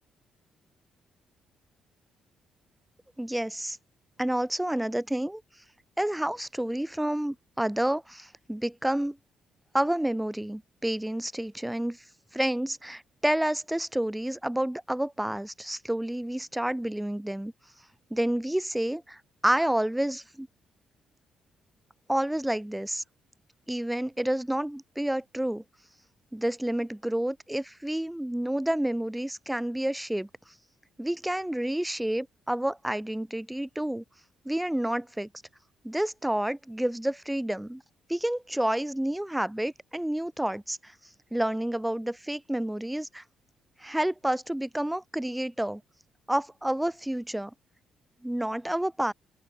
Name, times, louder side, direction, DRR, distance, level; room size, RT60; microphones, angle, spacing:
voice 1, 3.2-3.8 4.2-5.4 6.0-9.2 9.7-12.0 12.3-17.5 18.1-20.5 22.1-23.0 23.7-25.6 26.3-30.3 31.0-34.0 34.4-35.3 35.8-37.8 38.1-40.9 41.3-43.2 43.8-45.8 46.3-47.5 48.2-49.1, right 1 dB, 5° right, 5.2 m, -29 dB
open air
cardioid pair, 90°, 0 cm